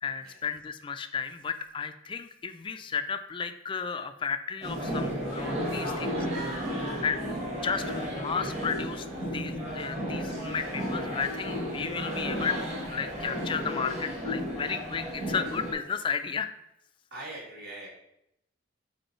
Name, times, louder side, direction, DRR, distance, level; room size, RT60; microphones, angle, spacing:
voice 1, 0.0-5.8 6.8-7.2 7.6-16.5, left 6 dB, 25° left, 9 dB, 0.3 m, -33 dB
sound 1, 4.6-15.7, equal, 40° right, 1.9 m, -33 dB
voice 2, 5.8-6.3 6.7-7.3 7.8-8.1 17.1-17.9, right 1 dB, 55° right, -4 dB, 2.3 m, -43 dB
5.3 x 4.3 x 4.3 m, 0.80 s
head